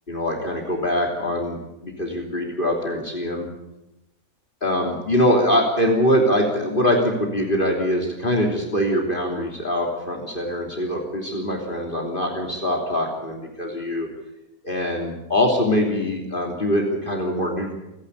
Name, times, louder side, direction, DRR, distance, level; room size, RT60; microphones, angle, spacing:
voice 1, 0.1-3.5 4.6-14.1 14.6-17.7, equal, 35° left, 1 dB, 3.4 m, -23 dB
28.5 x 11.5 x 10.0 m, 0.96 s
omnidirectional pair, 1.5 m